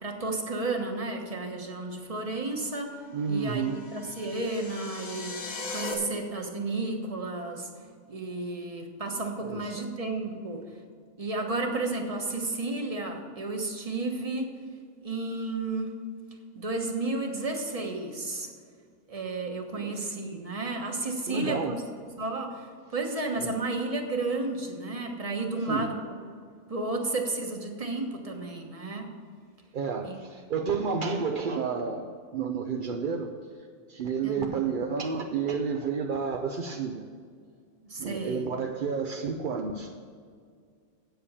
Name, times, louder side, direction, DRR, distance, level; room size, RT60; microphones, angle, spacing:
voice 1, 0.0-3.0 3.3-5.4 5.7-7.7 8.1-10.8 11.2-14.5 15.0-16.0 16.5-18.5 19.1-21.8 22.2-26.1 26.7-29.1 30.0-30.2 34.2-34.7 37.8-38.5, right 2 dB, 25° right, 2 dB, 1.2 m, -32 dB
voice 2, 3.1-3.8 9.5-9.7 19.8-20.0 21.3-21.8 25.7-25.9 29.7-32.1 32.3-33.3 33.9-37.1 38.0-40.0, right 5 dB, 55° right, 3 dB, 0.6 m, -30 dB
sound 1, 3.4-5.9, left 3 dB, 75° left, 1.9 m, -39 dB
8.6 x 7.9 x 6.9 m, 2.1 s
omnidirectional pair, 1.5 m